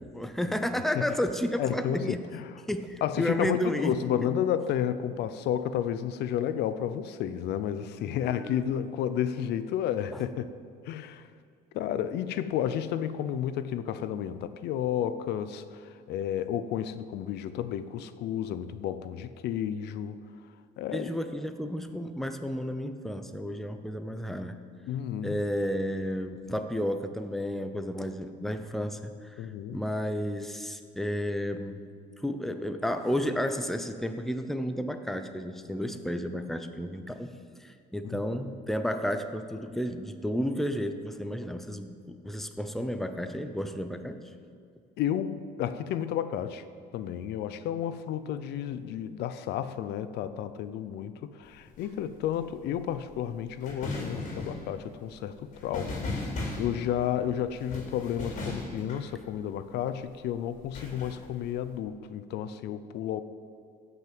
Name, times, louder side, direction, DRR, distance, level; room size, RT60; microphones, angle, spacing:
voice 1, 0.0-2.2 2.7-4.0 8.0-8.7 10.1-10.2 20.9-24.6 25.2-29.5 29.7-31.8 32.2-44.2, equal, ahead, 8 dB, 0.8 m, -32 dB
voice 2, 1.6-2.4 3.0-10.5 10.9-11.3 11.7-20.2 20.8-21.1 24.9-25.4 29.4-29.8 38.0-38.4 45.0-46.6 46.9-63.2, left 10 dB, 80° left, 12 dB, 0.7 m, -32 dB
sound 1, 51.4-59.8 60.5-61.7, left 2 dB, 45° left, 3.9 m, -38 dB
16.0 x 6.1 x 7.7 m, 2.3 s
cardioid pair, 110°, 17 cm